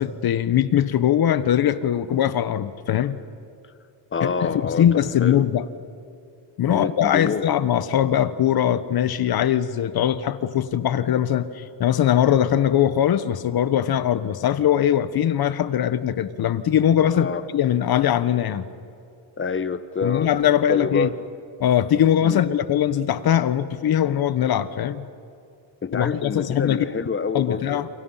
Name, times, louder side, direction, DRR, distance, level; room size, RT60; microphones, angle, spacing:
voice 1, 0.0-3.2 4.2-5.6 6.6-18.6 20.0-21.1 21.6-25.0 25.9-26.8 27.3-27.9, left 10 dB, 55° left, 13 dB, 1.3 m, -21 dB
voice 2, 4.1-4.8 5.2-5.4 6.7-7.5 17.1-17.4 19.4-21.1 22.2-22.4 25.8-27.8, left 5 dB, 25° left, 12 dB, 1.3 m, -27 dB
29.0 x 28.5 x 5.8 m, 2.5 s
cardioid pair, 125°, 45 cm